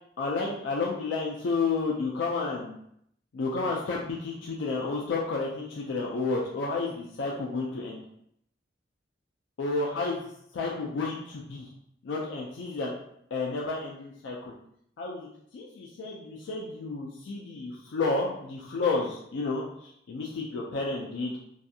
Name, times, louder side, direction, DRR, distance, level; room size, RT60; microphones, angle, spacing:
voice 1, 0.2-2.8 3.3-8.0 9.6-10.2 10.5-11.7 12.0-12.9 13.3-14.5 15.0-15.3 15.5-21.4, left 3 dB, 90° left, -2 dB, 0.4 m, -31 dB
2.5 x 2.3 x 2.7 m, 0.72 s
head